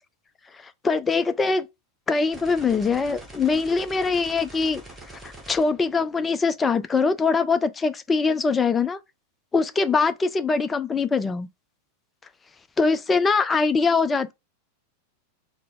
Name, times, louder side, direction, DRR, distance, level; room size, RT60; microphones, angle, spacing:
voice 1, 0.8-1.7 2.1-4.8 5.1-9.0 9.5-11.5 12.8-14.3, left 4 dB, 15° left, 0.4 m, -22 dB
sound 1, 2.3-6.5, right 1 dB, 5° right, 1.2 m, -44 dB
3.9 x 2.0 x 3.4 m
figure-of-eight pair, 90°, 0 cm